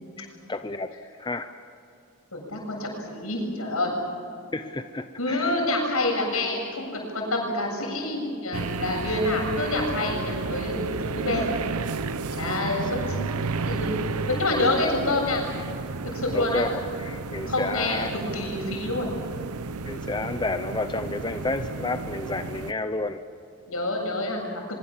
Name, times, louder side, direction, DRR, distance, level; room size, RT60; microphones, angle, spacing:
voice 1, 0.2-0.9 1.2-1.5 4.5-5.7 12.3-12.7 13.1-13.3 16.3-18.1 19.8-23.2, left 2 dB, 20° left, 8 dB, 0.7 m, -31 dB
voice 2, 2.3-4.0 5.2-11.5 12.3-13.3 13.6-15.5 16.0-16.6 17.5-18.1 18.3-19.1 23.7-24.6, left 2 dB, 75° left, 1 dB, 7.6 m, -27 dB
sound 1, 8.5-22.7, right 4 dB, 85° right, 0.8 m, -32 dB
23.5 x 23.5 x 7.3 m, 2.5 s
head